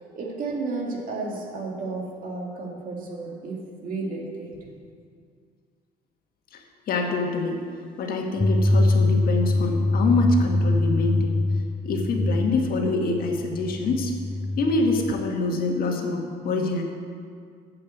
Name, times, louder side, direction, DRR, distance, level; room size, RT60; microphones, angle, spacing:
voice 1, 0.0-4.6, right 3 dB, 55° right, -1 dB, 2.5 m, -32 dB
voice 2, 6.5-7.6 8.0-11.4 11.8-14.1 14.6-16.8, left 3 dB, 60° left, 2 dB, 1.7 m, -25 dB
sound 1, 8.4-15.2, left 2 dB, 5° left, 0.4 m, -24 dB
8.7 x 7.8 x 8.0 m, 2.2 s
cardioid pair, 110°, 17 cm